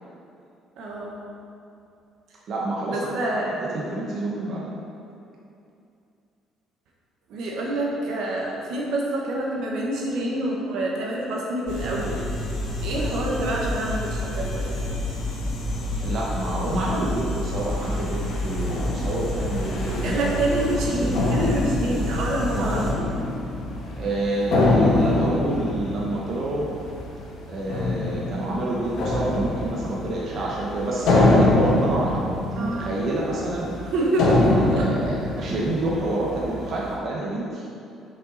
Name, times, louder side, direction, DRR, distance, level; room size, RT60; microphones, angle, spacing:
voice 1, 0.8-1.2 2.9-3.7 7.3-12.2 12.8-14.8 20.0-23.0 32.6-33.0 33.9-34.3 34.7-34.9, right 1 dB, 70° right, -2 dB, 1.2 m, -27 dB
voice 2, 2.5-3.4 3.7-4.7 16.0-21.2 22.5-22.9 23.9-26.7 27.4-33.8 34.2-37.8, right 1 dB, 50° right, -4 dB, 1.0 m, -28 dB
sound 1, 11.7-22.9, left 1 dB, 90° left, 1.7 m, -29 dB
sound 2, 17.1-37.0, left 2 dB, 70° left, 1.6 m, -25 dB
6.7 x 5.4 x 4.2 m, 2.6 s
cardioid pair, 125°, 0 cm